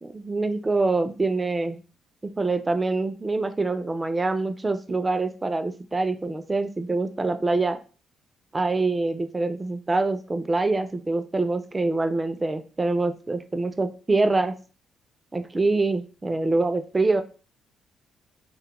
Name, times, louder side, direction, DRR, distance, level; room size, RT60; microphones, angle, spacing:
voice 1, 0.0-1.8 2.2-7.8 8.5-14.5 15.3-17.2, right 3 dB, 20° right, 8 dB, 0.3 m, -25 dB
2.2 x 2.1 x 2.9 m, 0.36 s
cardioid pair, 90°, 0 cm